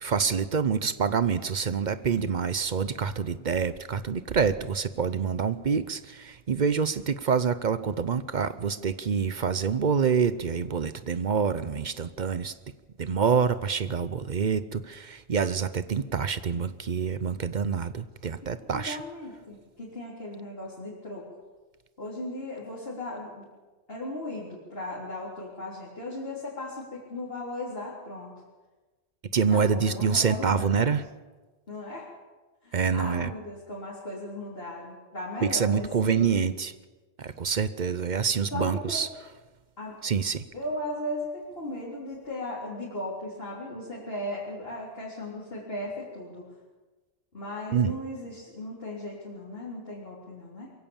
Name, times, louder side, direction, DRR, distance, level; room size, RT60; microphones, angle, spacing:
voice 1, 0.0-12.5 13.0-19.0 29.3-31.0 32.7-33.3 35.4-36.7 37.2-39.1 40.0-40.4 47.7-47.9, right 6 dB, 50° right, 0.8 m, -26 dB
voice 2, 18.4-21.3 22.0-23.4 23.9-28.3 29.5-30.9 31.7-32.1 32.6-36.5 38.5-39.1 39.8-39.9 40.5-46.5 47.3-50.7, left 1 dB, 60° left, 3.9 m, -37 dB
22.5 x 16.0 x 7.1 m
omnidirectional pair, 1.1 m